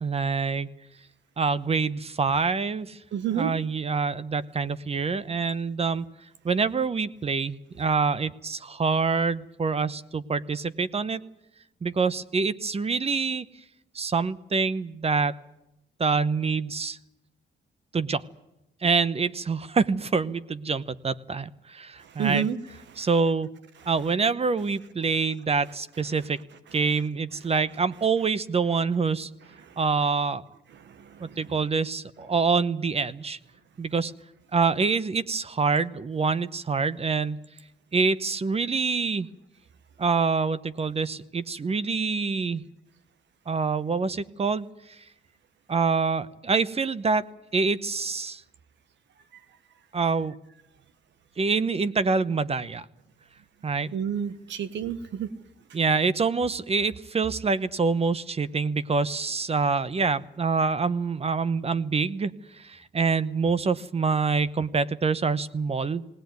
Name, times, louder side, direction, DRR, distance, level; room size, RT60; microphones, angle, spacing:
voice 1, 0.0-0.7 1.4-3.0 3.3-6.0 6.4-11.2 11.8-13.5 13.9-15.4 16.0-17.0 17.9-18.2 18.8-22.5 23.0-23.5 23.9-26.4 26.7-29.3 29.8-30.4 31.2-33.4 33.8-34.1 34.5-37.4 37.9-39.3 40.0-42.6 43.5-44.7 45.7-47.2 47.5-48.4 49.9-50.3 51.4-52.8 53.6-53.9 55.7-66.0, right 4 dB, 30° right, 16 dB, 0.9 m, -26 dB
voice 2, 3.1-3.5 22.2-22.6 30.9-31.0 31.2-31.4 53.9-55.3, right 8 dB, 65° right, 13 dB, 1.2 m, -29 dB
19.5 x 18.0 x 9.4 m, 0.88 s
cardioid pair, 90°, 20 cm